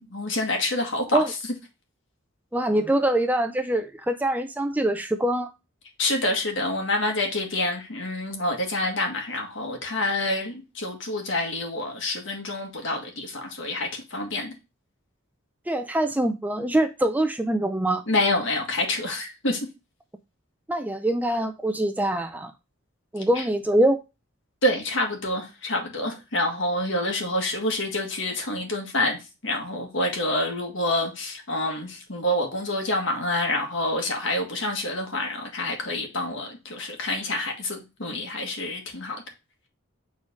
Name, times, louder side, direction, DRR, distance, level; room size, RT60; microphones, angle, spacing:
voice 1, 0.1-1.4 6.0-14.6 18.1-19.7 23.2-23.4 24.6-39.2, left 1 dB, 60° left, 1.8 m, -27 dB
voice 2, 2.5-5.5 15.7-18.0 20.7-22.5 23.1-24.0, right 1 dB, 10° right, 0.4 m, -24 dB
7.2 x 3.8 x 3.6 m
head